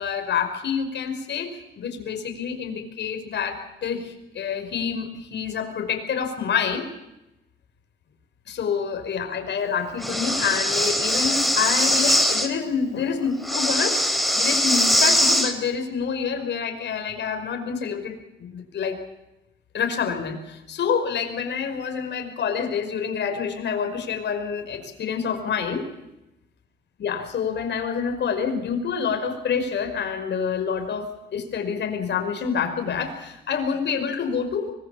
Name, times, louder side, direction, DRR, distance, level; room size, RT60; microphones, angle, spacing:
voice 1, 0.0-1.5 1.8-6.9 8.5-19.0 19.7-25.8 27.0-34.7, left 6 dB, 60° left, 6 dB, 5.3 m, -27 dB
Breathing, 10.0-12.5 13.4-15.5, equal, ahead, 4.0 m, -21 dB
24.5 x 22.0 x 7.1 m, 0.91 s
cardioid pair, 90°, 20 cm